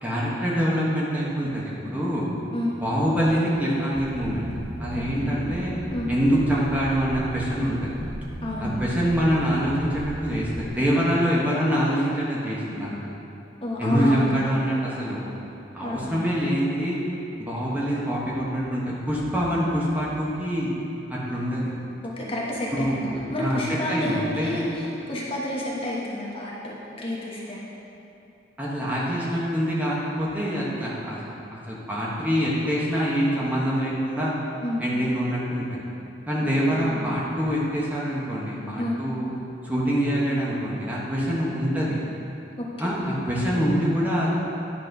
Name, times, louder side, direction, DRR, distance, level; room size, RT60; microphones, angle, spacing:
voice 1, 0.0-2.3 2.7-4.5 4.8-5.7 6.1-8.0 8.6-13.1 13.8-15.3 15.7-17.0 17.4-20.7 21.1-21.7 22.7-23.0 23.4-23.6 23.9-24.7 28.6-31.3 31.7-34.4 34.8-35.8 36.3-39.3 39.6-42.0 42.8-44.3, equal, 10° right, -6 dB, 1.2 m, -25 dB
sound 1, 3.9-10.7, right 1 dB, 45° right, 0.7 m, -36 dB
voice 2, 4.9-5.4 5.9-6.1 8.4-8.8 13.6-14.3 15.8-16.2 22.0-23.0 23.3-27.6 34.6-34.9 36.7-37.0 38.8-39.0 42.6-43.0, left 1 dB, 30° left, -5 dB, 1.2 m, -30 dB
10.5 x 4.3 x 5.3 m, 2.9 s
head